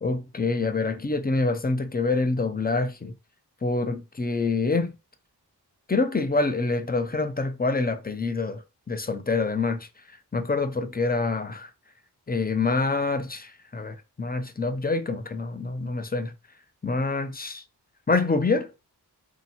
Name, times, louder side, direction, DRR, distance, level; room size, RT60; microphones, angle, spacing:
voice 1, 0.0-3.1 3.6-4.9 5.9-9.9 10.3-11.7 12.3-16.3 16.8-17.6 18.1-18.7, left 3 dB, 25° left, 0.6 m, -26 dB
3.4 x 2.8 x 4.2 m
wide cardioid pair, 70°, 40 cm